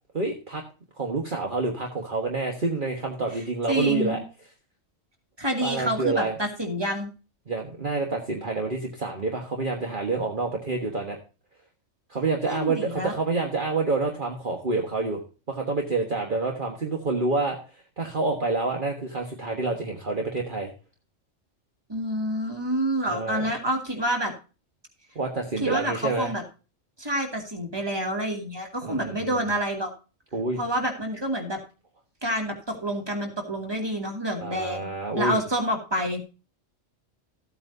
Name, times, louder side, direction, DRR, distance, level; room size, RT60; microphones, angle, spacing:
voice 1, 0.1-0.6 1.0-4.2 5.6-6.4 7.5-11.2 12.1-15.2 15.5-17.6 18.0-20.7 23.1-23.4 25.2-26.3 28.8-29.4 30.3-30.6 34.4-35.4, right 3 dB, 40° right, 2 dB, 1.6 m, -28 dB
voice 2, 3.7-4.2 5.4-7.1 12.4-13.1 21.9-24.3 25.6-26.4 27.0-29.9 30.6-31.6 32.2-36.2, equal, 20° right, 2 dB, 2.5 m, -28 dB
14.5 x 8.5 x 2.7 m, 0.34 s
omnidirectional pair, 1.3 m